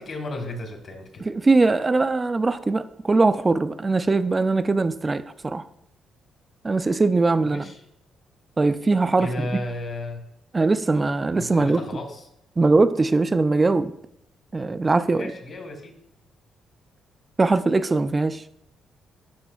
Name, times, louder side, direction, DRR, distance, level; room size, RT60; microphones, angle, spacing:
voice 1, 0.0-1.3 7.4-7.8 9.2-10.2 11.3-12.2 15.1-15.9, left 1 dB, 55° left, 1.4 m, -33 dB
voice 2, 1.2-5.7 6.6-7.7 8.6-9.5 10.5-11.8 12.6-13.9 14.5-15.3 17.4-18.4, right 3 dB, 25° right, 0.4 m, -21 dB
11.5 x 4.3 x 2.3 m
cardioid pair, 90°, 0 cm